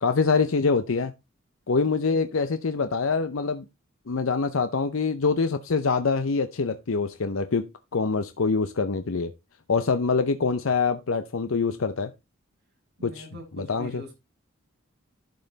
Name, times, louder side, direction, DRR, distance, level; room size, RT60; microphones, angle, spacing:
voice 1, 0.0-1.1 1.7-3.6 4.1-7.7 7.9-9.3 9.7-12.1 13.0-13.3 13.6-14.0, left 4 dB, 75° left, 0.7 m, -25 dB
voice 2, 13.0-14.1, equal, 50° right, 6.1 m, -43 dB
11.5 x 5.5 x 4.0 m
head